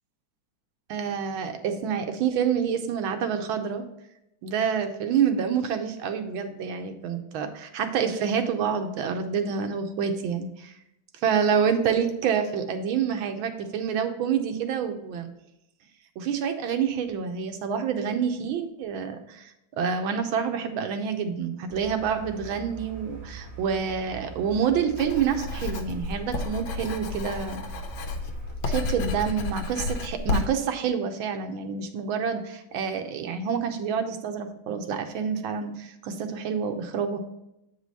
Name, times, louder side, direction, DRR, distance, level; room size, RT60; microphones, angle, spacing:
voice 1, 0.9-3.8 4.4-10.7 11.2-15.3 16.2-27.6 28.6-37.2, right 7 dB, 85° right, 6 dB, 1.6 m, -27 dB
sound 1, 21.7-28.6, right 4 dB, 35° right, 1.9 m, -42 dB
Writing, 25.0-30.5, left 3 dB, 85° left, 1.7 m, -31 dB
8.3 x 4.9 x 4.1 m, 0.86 s
omnidirectional pair, 2.2 m